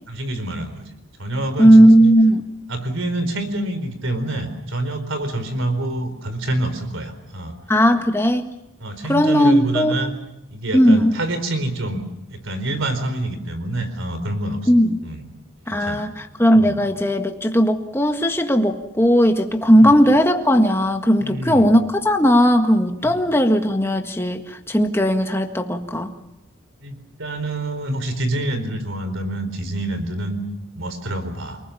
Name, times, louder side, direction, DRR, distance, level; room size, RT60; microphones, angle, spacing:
voice 1, 0.1-0.9 1.2-1.9 2.7-7.5 8.8-10.2 10.5-14.7 15.0-15.2 15.7-16.0 16.5-16.8 19.7-20.0 21.2-21.7 23.0-23.3 26.8-30.4 30.7-31.6, right 1 dB, 65° right, 9 dB, 4.4 m, -27 dB
voice 2, 1.6-2.4 7.7-8.5 9.1-10.1 10.7-11.1 14.7-15.0 15.7-26.1, equal, 10° left, 5 dB, 1.7 m, -16 dB
29.0 x 20.0 x 7.2 m, 0.86 s
head